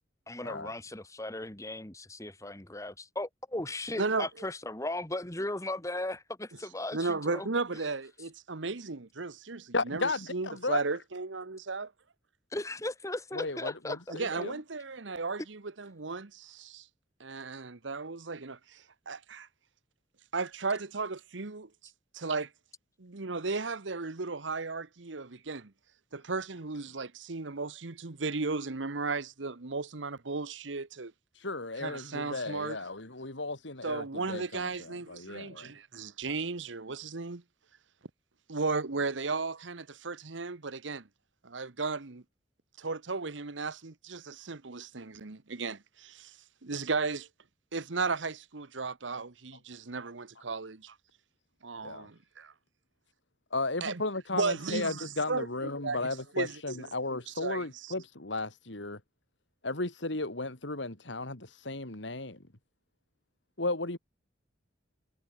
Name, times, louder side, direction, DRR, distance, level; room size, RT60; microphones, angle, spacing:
voice 1, 0.3-7.5 12.5-14.0, left 1 dB, 15° left, 1.9 m, -37 dB
voice 2, 4.0-4.3 6.9-11.9 14.1-16.9 17.2-19.5 20.3-21.7 22.1-22.5 23.0-25.7 26.1-31.1 31.8-32.8 33.8-37.4 38.5-41.1 41.4-42.2 42.8-46.4 46.6-47.3 47.7-50.9 51.6-52.5 53.8-54.0 54.3-56.9 57.3-57.9, right 4 dB, 75° right, 1.2 m, -35 dB
voice 3, 9.7-10.8 13.3-14.5 31.3-35.7 51.8-52.1 53.5-59.0 59.6-62.4 63.6-64.0, left 2 dB, 75° left, 3.1 m, -35 dB
head